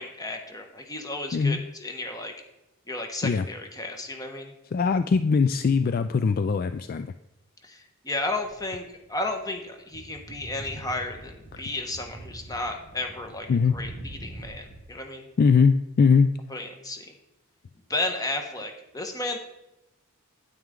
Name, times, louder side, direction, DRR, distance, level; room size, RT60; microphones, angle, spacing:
voice 1, 0.0-2.3 2.9-4.5 7.6-15.3 16.5-17.1 17.9-19.4, left 2 dB, 15° left, 4 dB, 1.1 m, -33 dB
voice 2, 1.3-1.6 3.2-3.5 4.7-7.1 11.5-11.6 13.5-13.8 15.4-16.4, left 5 dB, 45° left, 11 dB, 0.3 m, -21 dB
sound 1, 8.4-9.6 9.9-14.8, right 1 dB, 75° left, 2.9 m, -44 dB
9.3 x 9.0 x 3.7 m, 0.92 s
head